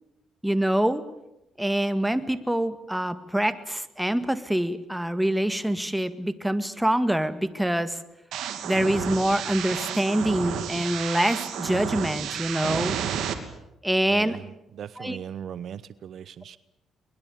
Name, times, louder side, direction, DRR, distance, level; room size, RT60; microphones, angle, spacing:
voice 1, 0.4-1.1 1.6-8.0 8.6-13.0 13.8-14.4 15.0-15.2, right 1 dB, 5° right, 11 dB, 1.9 m, -25 dB
sound 1, 8.3-13.3, right 9 dB, 80° right, 2.9 m, -31 dB
voice 2, 14.1-16.6, right 9 dB, 65° right, 16 dB, 0.8 m, -39 dB
23.5 x 21.0 x 8.5 m, 0.89 s
cardioid pair, 90°, 0 cm